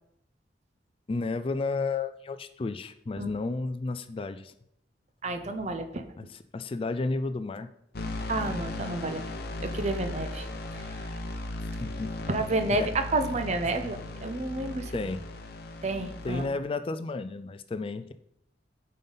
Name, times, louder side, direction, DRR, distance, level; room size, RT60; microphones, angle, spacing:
voice 1, 1.1-4.5 6.2-6.3 6.5-7.7 11.8-12.1 12.8-12.9 14.9-15.2 16.2-18.1, left 3 dB, 30° left, 11 dB, 0.3 m, -32 dB
voice 2, 5.2-6.0 8.3-9.2 9.6-10.5 10.7-11.2 12.3-14.9 15.8-16.5, right 2 dB, 40° right, 7 dB, 0.7 m, -30 dB
sound 1, 7.9-16.5, left 2 dB, 55° left, 0.9 m, -37 dB
9.2 x 5.3 x 4.0 m, 0.76 s
head